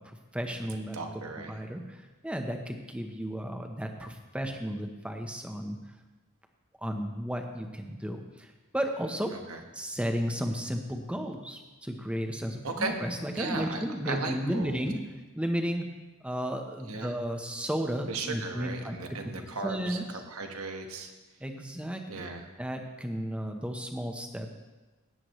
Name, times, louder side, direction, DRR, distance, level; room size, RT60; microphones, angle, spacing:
voice 1, 0.0-1.0 1.4-5.8 6.8-9.3 9.7-15.0 15.4-15.8 16.2-19.0 19.6-20.0 21.4-22.2 22.6-24.5, equal, 5° right, 4 dB, 0.9 m, -33 dB
voice 2, 0.9-1.5 9.5-9.6 12.6-13.0 13.4-14.8 16.9-17.1 18.1-21.1 22.1-22.5, right 3 dB, 75° right, 4 dB, 1.4 m, -36 dB
16.5 x 9.6 x 3.2 m, 1.2 s
head